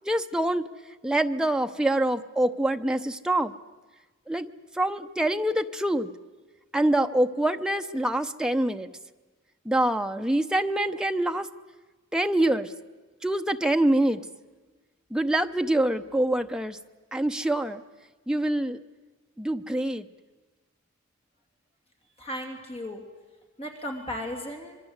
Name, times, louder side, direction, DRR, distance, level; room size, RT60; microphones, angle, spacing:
voice 1, 0.0-0.6 1.0-3.5 4.3-4.5 4.8-6.1 6.7-8.9 9.7-11.5 12.1-12.7 13.2-14.2 15.1-16.8 17.1-17.8 18.3-18.8 19.4-20.1, right 1 dB, 5° right, 6 dB, 0.7 m, -25 dB
voice 2, 22.2-23.0 23.6-24.8, left 1 dB, 30° left, 3 dB, 2.9 m, -35 dB
26.0 x 22.5 x 8.1 m, 1.3 s
head